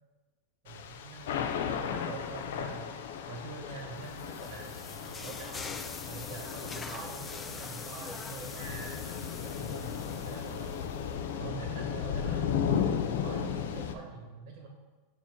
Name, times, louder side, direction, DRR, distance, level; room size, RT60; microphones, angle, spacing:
voice 1, 0.6-2.9 3.3-5.7 6.1-10.9 11.4-14.7, right 4 dB, 40° right, 0 dB, 1.1 m, -45 dB
Thunder / Rain, 0.7-13.9, left 8 dB, 75° left, 0.5 m, -35 dB
sound 1, 3.7-11.2, left 4 dB, 15° left, 0.3 m, -44 dB
7.2 x 3.0 x 5.9 m, 1.3 s
supercardioid pair, 155°, 0 cm